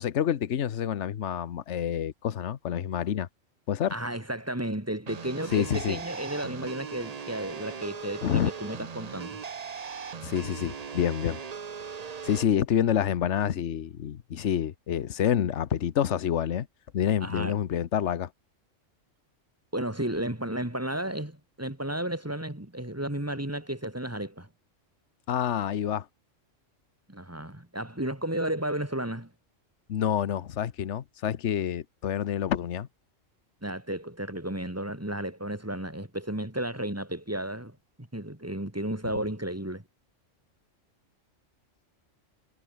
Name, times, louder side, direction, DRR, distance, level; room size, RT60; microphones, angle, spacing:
voice 1, 0.0-3.3 3.7-3.9 5.5-6.0 8.2-8.5 10.2-11.4 12.2-16.7 16.9-18.3 25.3-26.1 29.9-32.9, left 9 dB, 70° left, 1.2 m, -28 dB
voice 2, 3.9-9.4 17.2-17.5 19.7-24.5 27.1-29.3 33.6-39.8, right 1 dB, 10° right, 2.5 m, -33 dB
sound 1, 5.1-12.4, right 6 dB, 35° right, 0.8 m, -39 dB
omnidirectional pair, 1.3 m